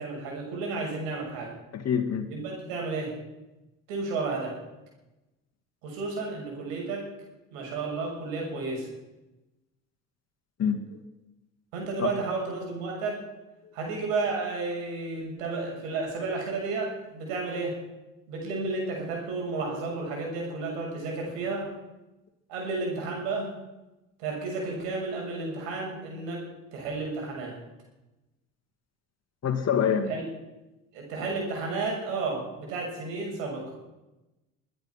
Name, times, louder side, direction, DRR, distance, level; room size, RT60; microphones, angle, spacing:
voice 1, 0.0-1.6 2.3-3.1 3.9-4.6 5.8-7.1 7.5-8.9 11.7-13.2 13.7-17.8 18.3-21.7 22.5-23.5 24.2-26.5 26.7-27.6 30.1-30.2 30.9-33.7, right 3 dB, 75° right, 0 dB, 6.6 m, -32 dB
voice 2, 1.7-2.3 10.6-11.0 12.0-12.1 29.4-30.1, left 7 dB, 40° left, 5 dB, 2.4 m, -26 dB
23.0 x 9.9 x 5.9 m, 1.0 s
hypercardioid pair, 70°, 39 cm